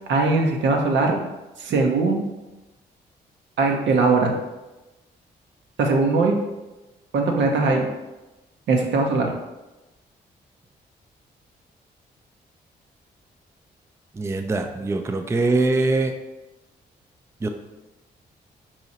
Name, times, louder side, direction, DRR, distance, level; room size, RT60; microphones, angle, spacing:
voice 1, 0.1-1.2 1.6-2.2 3.6-4.3 5.8-6.4 7.1-7.9 8.7-9.3, right 3 dB, 70° right, 2 dB, 0.6 m, -20 dB
voice 2, 14.1-16.2 17.4-17.5, right 2 dB, 15° right, 6 dB, 0.3 m, -22 dB
2.8 x 2.4 x 4.0 m, 1.1 s
supercardioid pair, 45°, 20 cm